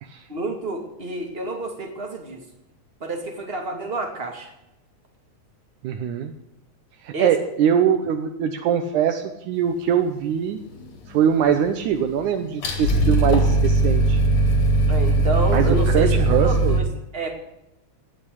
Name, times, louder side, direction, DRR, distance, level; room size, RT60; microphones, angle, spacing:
voice 1, 0.3-2.4 3.0-4.5 7.1-7.3 14.9-16.8 17.1-17.3, right 2 dB, 20° right, 3 dB, 2.4 m, -29 dB
voice 2, 5.8-6.3 7.0-10.6 11.1-14.2 15.5-16.8, right 8 dB, 80° right, 6 dB, 2.4 m, -22 dB
sound 1, 10.7-11.6 11.9-16.8, right 1 dB, 55° left, 3.8 m, -19 dB
18.0 x 7.0 x 9.9 m, 0.88 s
omnidirectional pair, 3.5 m